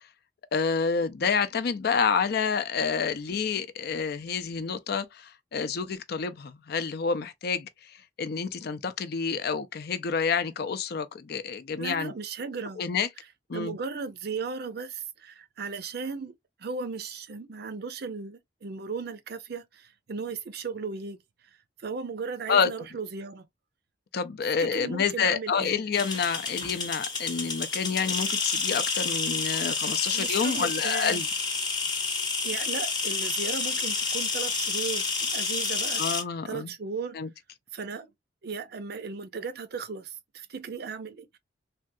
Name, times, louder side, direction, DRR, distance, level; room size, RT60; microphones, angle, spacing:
voice 1, 0.5-7.7 8.2-12.1 12.8-13.1 13.5-13.8 22.5-22.7 24.1-31.3 36.0-36.7 37.1-37.3, left 6 dB, 60° left, 0.4 m, -28 dB
voice 2, 11.8-12.8 13.5-16.3 16.6-21.2 21.8-23.4 24.4-25.8 30.1-31.2 32.4-36.0 36.4-37.2 37.7-38.1 38.4-41.4, right 5 dB, 60° right, 0.5 m, -36 dB
sound 1, 25.9-36.2, left 4 dB, 25° left, 0.8 m, -29 dB
3.4 x 2.3 x 2.5 m
head